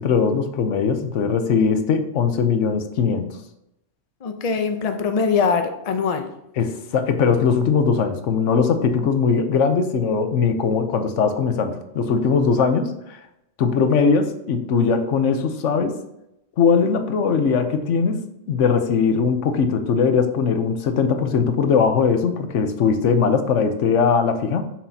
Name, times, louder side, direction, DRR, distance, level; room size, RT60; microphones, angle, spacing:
voice 1, 0.0-3.4 6.6-13.2 13.6-16.0 16.6-18.2 18.5-24.6, left 5 dB, 85° left, 8 dB, 1.1 m, -20 dB
voice 2, 4.2-6.3, left 5 dB, 40° left, 6 dB, 0.6 m, -22 dB
7.5 x 6.2 x 2.8 m, 0.83 s
omnidirectional pair, 1.2 m